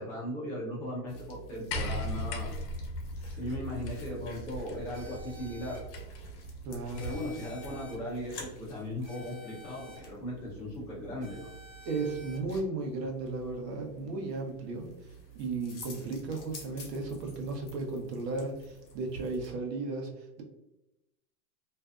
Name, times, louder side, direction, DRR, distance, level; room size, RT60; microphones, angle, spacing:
voice 1, 0.0-2.5 3.4-5.8 7.0-11.5, left 1 dB, 20° left, -7 dB, 0.6 m, -38 dB
sound 1, 1.1-19.5, right 3 dB, 45° left, 0.8 m, -48 dB
sound 2, 1.7-7.3 8.4-8.5, left 1 dB, 80° left, 0.7 m, -38 dB
sound 3, 4.9-5.8 6.9-7.9 9.0-10.0 11.2-12.4, left 1 dB, 45° right, 1.0 m, -51 dB
voice 2, 6.6-7.2 11.8-14.9 15.3-20.4, right 3 dB, 80° right, 1 dB, 0.9 m, -35 dB
2.5 x 2.2 x 2.4 m, 0.95 s
supercardioid pair, 160°, 48 cm